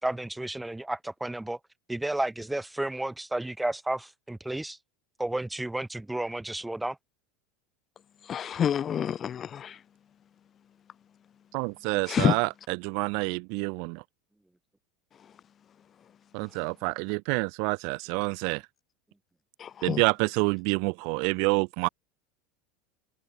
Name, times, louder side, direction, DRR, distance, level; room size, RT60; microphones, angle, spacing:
voice 1, 0.0-1.6 1.9-4.8 5.2-7.0, right 1 dB, 5° right, 5.7 m, -32 dB
voice 2, 8.3-9.7 12.1-12.3 19.6-20.0, left 9 dB, 25° left, 3.2 m, -27 dB
voice 3, 11.5-14.0 16.3-18.6 19.8-21.9, right 38 dB, 55° right, 2.9 m, -28 dB
supercardioid pair, 155°, 0 cm